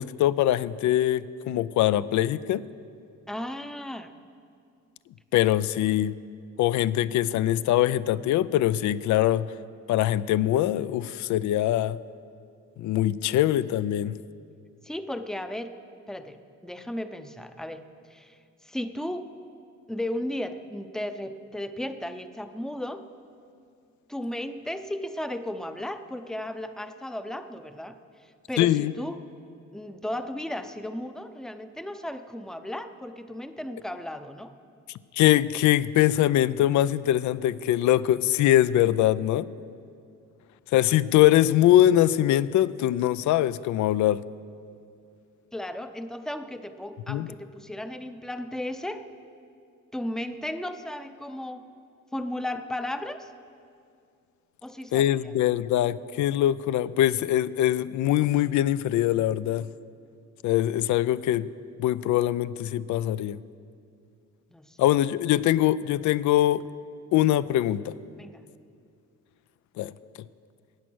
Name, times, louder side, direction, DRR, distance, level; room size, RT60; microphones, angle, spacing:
voice 1, 0.0-2.6 5.3-6.1 6.6-9.5 9.9-12.0 12.8-14.2 28.6-28.9 35.1-39.5 40.7-44.2 47.1-47.3 54.9-59.7 60.4-61.5 61.8-63.4 64.8-66.6 67.1-67.9 69.8-69.9, left 13 dB, 75° left, 18 dB, 0.4 m, -23 dB
voice 2, 3.3-4.1 14.8-15.8 16.1-19.3 19.9-23.1 24.1-29.2 29.7-34.5 45.5-49.1 49.9-51.7 52.1-53.3 54.6-55.1 64.5-64.8 68.2-68.4, left 1 dB, ahead, 9 dB, 0.6 m, -35 dB
14.5 x 9.2 x 6.1 m, 2.3 s
cardioid pair, 90°, 30 cm